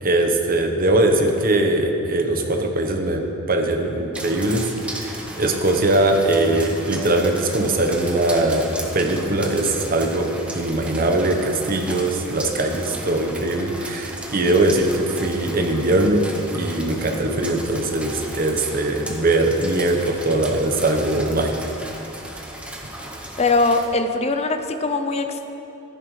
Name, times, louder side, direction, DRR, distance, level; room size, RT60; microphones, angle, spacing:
voice 1, 0.0-8.7 8.9-16.2 16.5-21.5, right 2 dB, 40° right, 3 dB, 0.9 m, -21 dB
sound 1, 4.1-23.9, right 1 dB, 5° right, 0.8 m, -36 dB
voice 2, 23.4-25.4, left 3 dB, 30° left, 7 dB, 0.5 m, -21 dB
14.5 x 10.5 x 3.2 m, 2.9 s
head